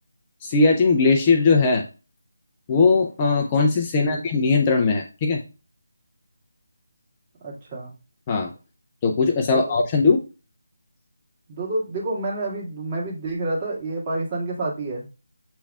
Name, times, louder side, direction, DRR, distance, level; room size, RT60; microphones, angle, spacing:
voice 1, 0.4-1.8 2.7-5.4 8.3-8.5 9.0-10.2, left 4 dB, 20° left, 1 dB, 0.5 m, -19 dB
voice 2, 7.4-7.9 9.5-9.8 11.5-15.2, right 2 dB, 25° right, -3 dB, 1.8 m, -29 dB
6.9 x 3.3 x 2.4 m, 0.32 s
figure-of-eight pair, 160°, 0 cm